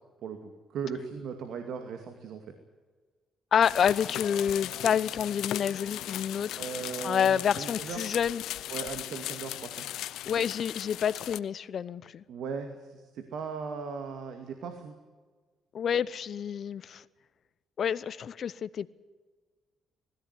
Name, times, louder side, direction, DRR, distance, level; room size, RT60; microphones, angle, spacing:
voice 1, 0.2-2.5 6.6-8.0 8.7-9.9 12.3-14.9, right 6 dB, 75° right, 2.3 m, -38 dB
voice 2, 3.5-6.6 7.0-8.4 10.3-12.2 15.7-17.0 17.8-18.9, left 8 dB, 55° left, 0.8 m, -28 dB
sound 1, 3.6-11.4, left 13 dB, 85° left, 0.7 m, -37 dB
20.0 x 15.5 x 9.7 m
cardioid pair, 90°, 0 cm